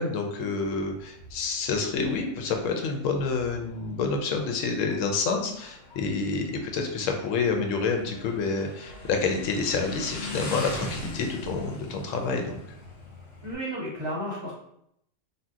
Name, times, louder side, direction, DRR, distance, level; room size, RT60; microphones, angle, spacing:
voice 1, 0.0-12.6, left 4 dB, 90° left, 3 dB, 1.0 m, -28 dB
Motorcycle, 0.6-13.5, left 1 dB, 65° left, 0.8 m, -41 dB
voice 2, 13.4-14.5, equal, 25° right, -7 dB, 0.8 m, -33 dB
2.7 x 2.1 x 3.5 m, 0.75 s
omnidirectional pair, 1.3 m